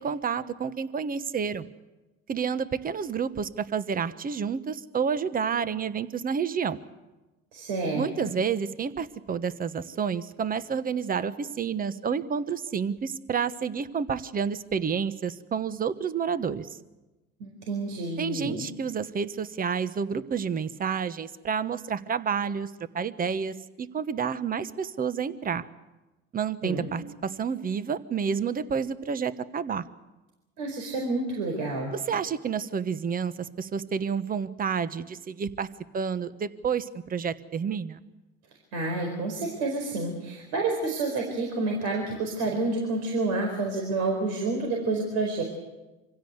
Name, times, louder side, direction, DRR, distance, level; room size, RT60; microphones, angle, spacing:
voice 1, 0.0-1.7 2.3-6.8 7.9-16.7 18.2-25.6 26.3-29.8 31.9-35.7 35.9-38.0, right 6 dB, 30° right, 13 dB, 1.2 m, -29 dB
voice 2, 7.5-8.3 17.4-18.6 26.6-26.9 30.6-31.9 38.7-45.4, right 3 dB, 75° right, 2 dB, 4.6 m, -29 dB
25.5 x 16.5 x 8.1 m, 1.1 s
supercardioid pair, 95°, 29 cm